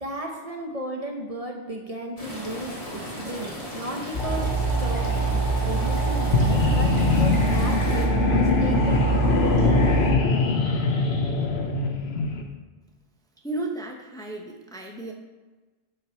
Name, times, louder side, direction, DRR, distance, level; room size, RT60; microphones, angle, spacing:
voice 1, 0.0-9.5, right 1 dB, 35° right, 1 dB, 0.9 m, -35 dB
sound 1, 2.2-8.1, left 1 dB, 35° left, 2.0 m, -36 dB
sound 2, 4.1-10.1, right 3 dB, 50° left, 3.0 m, -24 dB
sound 3, 6.2-12.4, left 4 dB, 75° left, 1.2 m, -23 dB
voice 2, 13.4-15.1, right 2 dB, 5° left, 0 dB, 0.8 m, -33 dB
12.5 x 4.9 x 4.5 m, 1.2 s
omnidirectional pair, 1.1 m